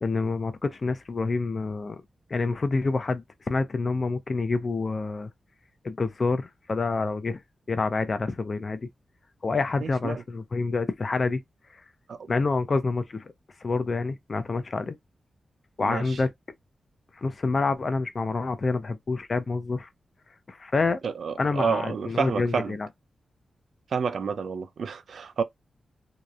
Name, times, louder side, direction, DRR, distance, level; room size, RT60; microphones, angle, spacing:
voice 1, 0.0-2.0 2.3-5.3 5.8-7.4 7.7-8.8 9.4-11.4 12.3-13.3 13.6-15.0 15.8-16.3 17.2-19.9 20.5-21.0 21.4-22.9, left 3 dB, 45° left, 0.4 m, -27 dB
voice 2, 9.8-10.2 12.1-12.2 15.8-16.2 21.0-22.8 23.9-25.4, right 6 dB, 80° right, 0.4 m, -29 dB
2.8 x 2.0 x 2.3 m
wide cardioid pair, 105°, 0 cm